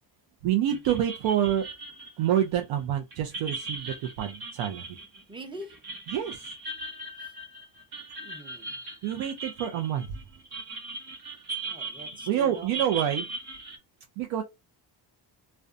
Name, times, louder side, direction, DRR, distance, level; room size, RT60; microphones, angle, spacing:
voice 1, 0.4-1.7 2.2-5.0 6.1-6.5 9.0-10.2 12.3-13.3 14.2-14.4, right 10 dB, 80° right, 0.5 m, -27 dB
sound 1, 0.7-13.8, right 3 dB, 55° right, 1.1 m, -39 dB
voice 2, 5.3-5.8 8.2-8.8 11.6-12.8, right 1 dB, 10° right, 0.6 m, -44 dB
2.5 x 2.2 x 2.4 m
cardioid pair, 95°, 45 cm